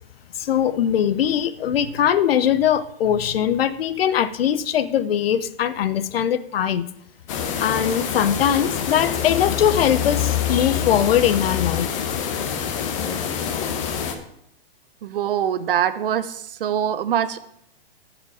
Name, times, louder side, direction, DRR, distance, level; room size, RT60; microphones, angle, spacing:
voice 1, 0.4-6.8 7.6-12.2, left 9 dB, 70° left, 15 dB, 0.7 m, -21 dB
sound 1, 7.3-14.2, left 7 dB, 30° left, 1.0 m, -27 dB
voice 2, 15.0-17.4, right 9 dB, 60° right, 13 dB, 0.8 m, -23 dB
14.0 x 5.1 x 4.9 m, 0.74 s
hypercardioid pair, 165°, 30 cm